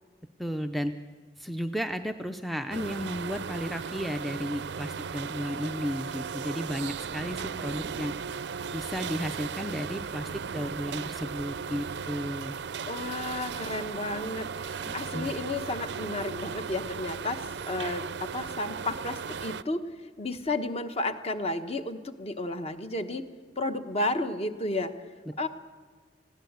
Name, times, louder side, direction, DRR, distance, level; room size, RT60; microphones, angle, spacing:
voice 1, 0.4-0.9 1.4-8.1 8.7-12.6 14.9-15.3 25.3-25.5, equal, ahead, 8 dB, 0.5 m, -34 dB
sound 1, 2.7-19.6, right 6 dB, 60° right, 0.5 m, -36 dB
voice 2, 12.9-23.3 23.6-25.1 25.4-25.5, left 2 dB, 35° left, 8 dB, 1.0 m, -32 dB
20.0 x 16.0 x 8.1 m, 1.6 s
head